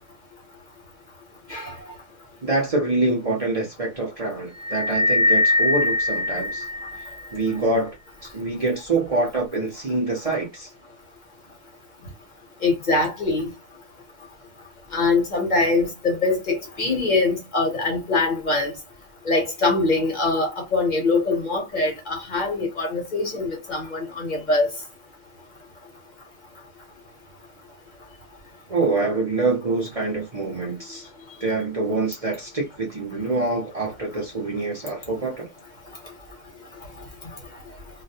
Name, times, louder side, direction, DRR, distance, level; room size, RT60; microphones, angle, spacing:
voice 1, 2.4-6.7 7.3-8.0 8.2-10.7 28.7-31.1 31.4-35.5, right 2 dB, 40° right, 0.7 m, -25 dB
sound 1, 4.6-7.3, left 2 dB, 65° right, 0.9 m, -22 dB
voice 2, 12.6-13.5 14.9-18.7 19.2-24.7, left 3 dB, 45° left, 1.0 m, -23 dB
2.3 x 2.1 x 2.6 m
omnidirectional pair, 1.1 m